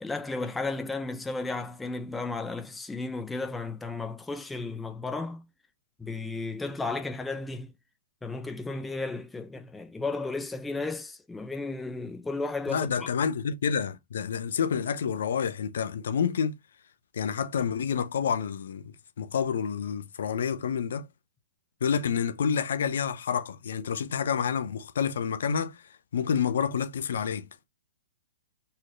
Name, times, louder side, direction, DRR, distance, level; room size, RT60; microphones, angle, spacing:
voice 1, 0.0-5.5 6.0-7.7 8.2-13.1, left 3 dB, 10° left, 0.5 m, -34 dB
voice 2, 12.7-16.5 17.1-21.1 21.8-25.8 26.1-27.5, left 7 dB, 75° left, 0.6 m, -28 dB
4.1 x 3.2 x 2.5 m
hypercardioid pair, 120°, 0 cm